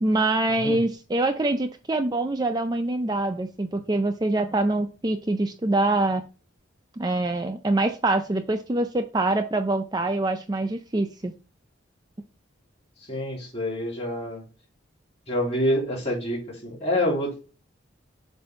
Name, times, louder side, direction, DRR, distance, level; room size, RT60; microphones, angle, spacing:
voice 1, 0.0-6.2 7.0-11.3, right 2 dB, 20° right, 6 dB, 0.4 m, -25 dB
voice 2, 13.1-14.4 15.3-17.3, left 1 dB, 30° left, -2 dB, 2.8 m, -27 dB
7.8 x 2.7 x 5.2 m, 0.34 s
head